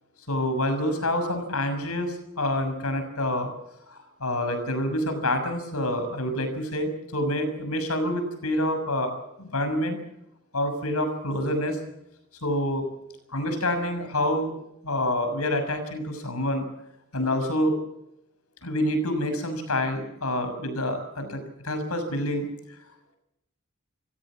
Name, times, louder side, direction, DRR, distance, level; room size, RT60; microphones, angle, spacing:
voice 1, 0.3-3.5 3.9-9.1 9.4-10.0 10.5-11.8 12.4-12.8 13.3-14.5 14.8-16.7 17.1-17.8 18.6-22.5, left 1 dB, 80° left, 8 dB, 6.4 m, -27 dB
27.5 x 16.5 x 7.5 m, 0.80 s
head